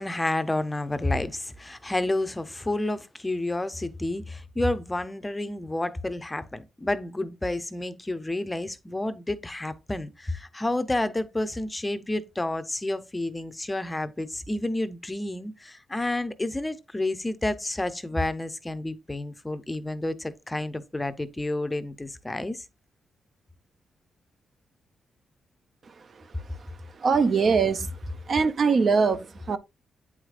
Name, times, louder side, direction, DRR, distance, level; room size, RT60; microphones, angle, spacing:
voice 1, 0.0-22.6, left 2 dB, 15° left, 0.5 m, -30 dB
voice 2, 27.0-27.9 28.3-29.6, right 5 dB, 45° right, 0.4 m, -22 dB
8.5 x 4.8 x 2.4 m
cardioid pair, 115°, 0 cm